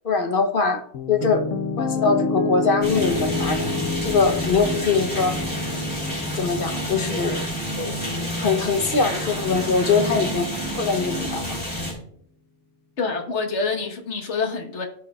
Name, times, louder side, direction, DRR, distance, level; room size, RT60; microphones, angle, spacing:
voice 1, 0.0-1.5 1.8-3.7 4.0-5.4 6.3-7.5 7.8-8.0 8.4-11.4, left 4 dB, 50° left, 5 dB, 1.1 m, -22 dB
Piano, 0.9-9.0, left 3 dB, 80° left, 1.1 m, -29 dB
sound 1, 2.8-11.9, equal, 10° left, 3.7 m, -28 dB
voice 2, 13.0-14.9, left 4 dB, 65° left, 4 dB, 1.6 m, -26 dB
16.5 x 6.3 x 2.4 m, 0.64 s
omnidirectional pair, 1.3 m